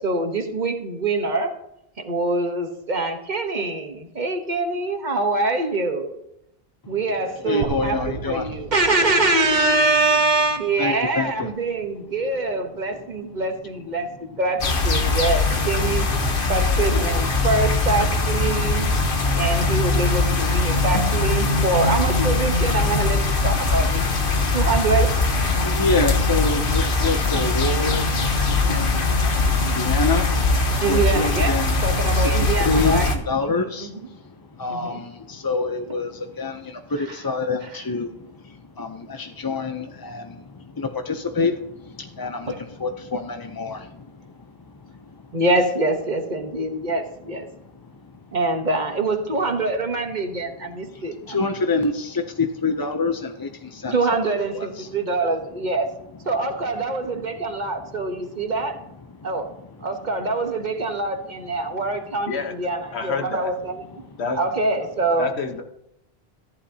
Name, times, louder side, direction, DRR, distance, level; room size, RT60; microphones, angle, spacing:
voice 1, 0.0-1.5 2.0-6.1 6.9-16.1 16.5-18.9 19.4-25.1 27.3-27.4 30.8-33.1 33.8-34.0 34.7-35.0 42.5-42.6 45.3-47.5 48.3-51.4 53.9-55.9 56.3-58.8 59.2-59.5 59.8-64.0 64.3-65.3, right 2 dB, 45° right, 5 dB, 1.2 m, -24 dB
voice 2, 7.4-8.7 10.8-11.5 13.3-13.4 15.0-15.2 25.5-45.4 47.5-48.4 50.6-54.0 54.5-54.9 57.4-58.6 59.1-60.0 64.0-64.2, left 3 dB, 30° left, 5 dB, 0.5 m, -28 dB
sound 1, 7.6-11.6, right 7 dB, 80° right, 1.0 m, -36 dB
sound 2, 14.6-33.1, left 3 dB, 55° left, 1.2 m, -21 dB
voice 3, 62.3-62.6 62.9-63.5 64.2-64.4 65.2-65.6, left 4 dB, 85° left, 5 dB, 1.4 m, -28 dB
14.5 x 11.0 x 2.8 m, 0.82 s
omnidirectional pair, 1.1 m